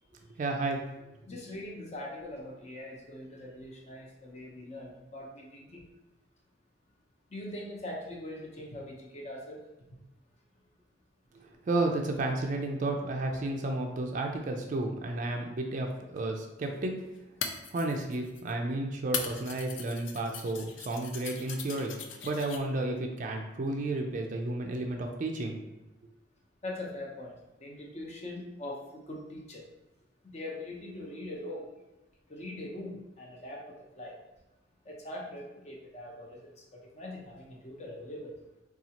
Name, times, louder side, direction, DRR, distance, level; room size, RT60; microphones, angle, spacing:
voice 1, 0.4-0.8 11.3-17.0 17.7-21.9 22.2-25.5, right 2 dB, 40° right, 2 dB, 0.3 m, -32 dB
voice 2, 1.3-5.8 7.3-9.6 26.6-27.3 27.6-28.8 29.1-29.6 30.2-31.6 32.3-34.2 34.8-36.4 36.7-38.3, left 1 dB, 35° left, -1 dB, 0.7 m, -42 dB
sound 1, 16.2-16.3 17.2-18.5 19.1-22.6, left 6 dB, 80° left, 0.4 m, -39 dB
4.0 x 2.4 x 2.8 m, 0.99 s
head